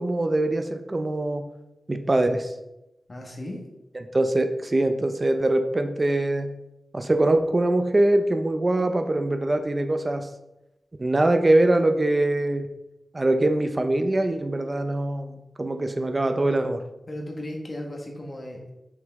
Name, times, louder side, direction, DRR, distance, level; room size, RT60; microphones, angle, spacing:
voice 1, 0.0-1.4 1.9-2.5 4.1-6.5 6.9-10.3 11.0-12.7 13.1-16.8, right 1 dB, 25° right, 7 dB, 0.5 m, -23 dB
voice 2, 3.1-3.6 16.2-16.3 17.1-18.7, left 1 dB, 30° left, 0 dB, 1.3 m, -36 dB
6.3 x 5.4 x 3.5 m, 0.93 s
wide cardioid pair, 170°, 0 cm